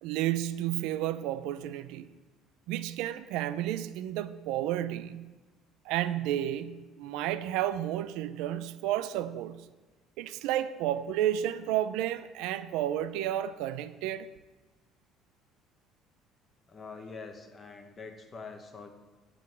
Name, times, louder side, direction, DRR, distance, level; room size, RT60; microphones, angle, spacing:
voice 1, 0.0-2.1 2.7-5.3 5.9-9.7 10.2-14.3, right 12 dB, 80° right, 0.4 m, -31 dB
voice 2, 16.7-18.9, left 4 dB, 20° left, 0.9 m, -45 dB
11.0 x 3.8 x 7.6 m
cardioid pair, 175°, 0 cm